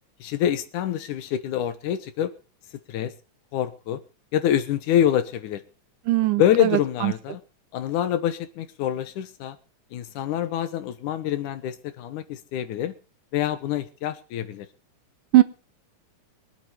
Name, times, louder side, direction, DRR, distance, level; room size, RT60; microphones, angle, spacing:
voice 1, 0.2-2.3 2.9-3.1 3.5-4.0 4.3-5.6 6.4-7.4 7.7-9.6 9.9-12.9 13.3-14.7, left 10 dB, 80° left, 2.6 m, -26 dB
voice 2, 6.1-7.1 15.3-15.4, right 15 dB, 90° right, 2.6 m, -20 dB
23.5 x 8.3 x 4.9 m
omnidirectional pair, 3.6 m